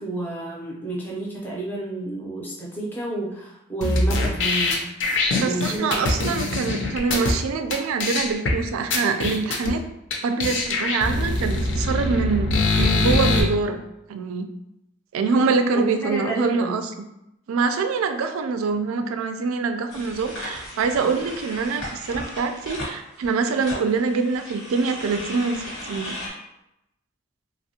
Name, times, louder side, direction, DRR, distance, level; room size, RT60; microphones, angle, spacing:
voice 1, 0.0-4.8 5.3-5.9 6.2-6.4 15.7-16.8, right 2 dB, 10° left, -4 dB, 0.5 m, -30 dB
sound 1, 3.8-7.3 7.7-7.8 8.0-8.5 8.9-9.7 10.1-10.2 10.4-13.4, left 2 dB, 60° left, 0.5 m, -23 dB
voice 2, 5.4-9.8 10.2-12.5 12.8-13.8 14.1-14.5 15.1-16.8 17.5-26.2, right 4 dB, 85° right, 7 dB, 0.3 m, -24 dB
sound 2, 19.9-26.3, left 1 dB, 85° left, 1.1 m, -36 dB
3.3 x 2.1 x 2.7 m, 0.87 s
head